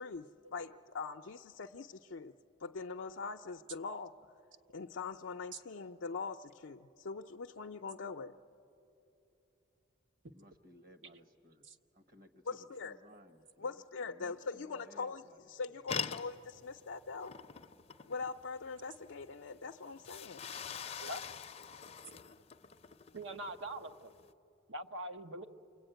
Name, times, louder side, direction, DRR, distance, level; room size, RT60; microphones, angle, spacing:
voice 1, 0.0-2.3 2.6-4.1 4.7-8.3 12.5-13.0 13.6-17.4 18.0-20.5, left 4 dB, 85° left, 3 dB, 0.5 m, -42 dB
voice 2, 10.3-11.7 11.9-13.8 14.1-15.4 15.7-15.8, left 1 dB, 50° right, 8 dB, 1.3 m, -60 dB
sound 1, 15.9-24.3, left 6 dB, 35° left, 0.5 m, -45 dB
voice 3, 23.1-24.1 24.7-25.5, right 1 dB, 80° right, 7 dB, 1.0 m, -43 dB
28.5 x 22.5 x 9.1 m, 2.8 s
head